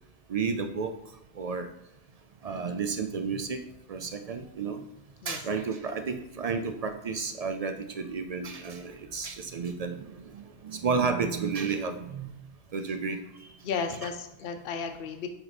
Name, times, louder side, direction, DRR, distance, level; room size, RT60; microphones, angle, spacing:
voice 1, 0.3-0.9 1.4-1.7 2.4-3.6 3.9-4.8 5.3-10.0 10.3-12.3 12.7-13.2, right 5 dB, 55° right, 7 dB, 0.4 m, -31 dB
voice 2, 13.6-15.3, left 5 dB, 65° left, 6 dB, 0.8 m, -34 dB
8.0 x 3.0 x 4.1 m, 0.86 s
omnidirectional pair, 1.0 m